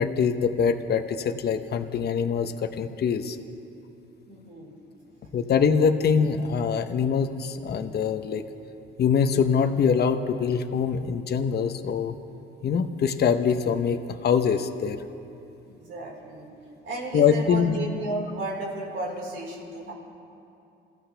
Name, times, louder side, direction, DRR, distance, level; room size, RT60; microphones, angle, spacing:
voice 1, 0.0-3.4 5.3-8.4 9.0-12.1 12.6-15.0 17.1-17.8, left 6 dB, 55° left, 7 dB, 1.0 m, -24 dB
voice 2, 4.3-4.8 15.7-16.5 16.8-19.9, right 2 dB, 75° right, -3 dB, 4.7 m, -34 dB
27.5 x 15.0 x 3.4 m, 2.7 s
cardioid pair, 90°, 20 cm